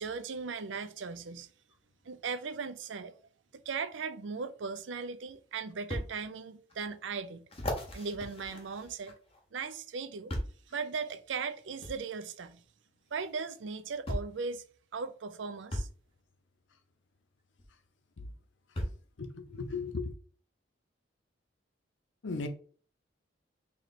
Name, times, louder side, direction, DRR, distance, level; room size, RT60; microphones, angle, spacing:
voice 1, 0.0-1.5 2.0-3.1 3.7-7.4 7.9-9.1 9.5-10.3 10.7-12.6 13.1-14.6 14.9-15.9, right 5 dB, 80° right, 0.5 m, -38 dB
sound 1, 4.8-4.9 5.9-6.1 6.7-6.8 7.5-9.4 10.3-10.7 11.8-12.0 13.2-13.3 14.1-14.4 15.7-16.0 17.6-17.7 18.8-19.1 19.9-20.0, equal, 30° left, 0.9 m, -37 dB
voice 2, 19.2-20.1 22.2-22.5, left 4 dB, 85° left, 0.6 m, -36 dB
3.2 x 2.9 x 4.0 m
head